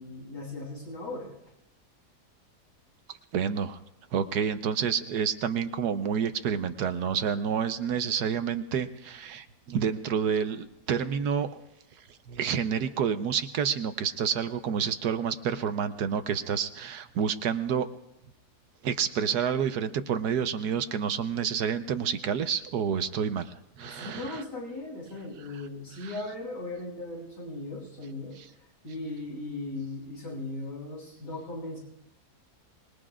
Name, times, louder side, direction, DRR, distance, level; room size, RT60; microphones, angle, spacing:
voice 1, 0.0-1.3 23.8-28.4 28.8-31.8, left 2 dB, 85° left, -4 dB, 8.3 m, -38 dB
voice 2, 3.3-3.8 4.1-11.6 12.3-17.9 18.8-24.4 26.0-26.1, right 7 dB, 75° right, 10 dB, 1.3 m, -29 dB
25.5 x 21.0 x 2.5 m, 0.85 s
omnidirectional pair, 1.8 m